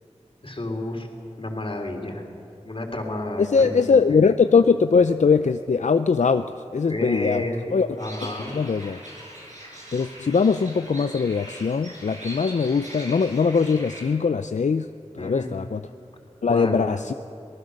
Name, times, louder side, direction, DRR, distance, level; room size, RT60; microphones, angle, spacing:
voice 1, 0.4-1.1 1.4-2.2 2.6-4.2 6.9-7.6 7.9-8.5 15.2-15.5 16.5-16.8, left 1 dB, 45° left, 2 dB, 3.5 m, -30 dB
voice 2, 3.4-7.4 7.7-7.9 8.5-9.0 9.9-14.9 15.1-15.8 16.4-17.1, left 5 dB, 75° left, 9 dB, 0.5 m, -21 dB
sound 1, 8.0-14.0, right 1 dB, 75° right, 7.7 m, -41 dB
25.5 x 18.5 x 6.6 m, 2.6 s
wide cardioid pair, 40°, 12 cm